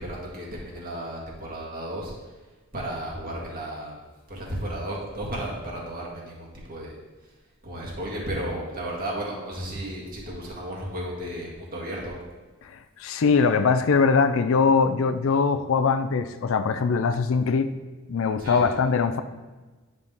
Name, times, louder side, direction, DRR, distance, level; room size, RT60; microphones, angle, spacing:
voice 1, 0.0-2.1 2.7-4.0 4.3-6.9 7.2-7.3 7.6-12.2 18.4-18.7, right 1 dB, 40° right, -4 dB, 1.9 m, -34 dB
voice 2, 12.6-17.7 18.1-19.2, left 5 dB, 60° left, 10 dB, 0.4 m, -22 dB
9.5 x 5.5 x 3.6 m, 1.2 s
head